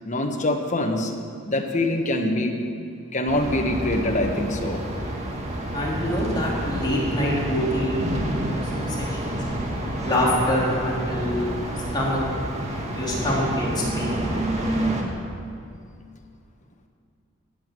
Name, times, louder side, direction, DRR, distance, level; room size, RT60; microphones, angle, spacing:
voice 1, 0.0-1.1 1.5-2.5 3.1-4.8, left 1 dB, 35° left, 3 dB, 1.4 m, -24 dB
sound 1, 3.3-15.0, right 1 dB, 30° right, 1.8 m, -28 dB
voice 2, 5.7-9.4 10.0-11.5 11.9-12.2 12.9-14.3 14.7-14.9, left 1 dB, 20° left, -6 dB, 3.5 m, -26 dB
13.5 x 8.0 x 9.3 m, 2.4 s
head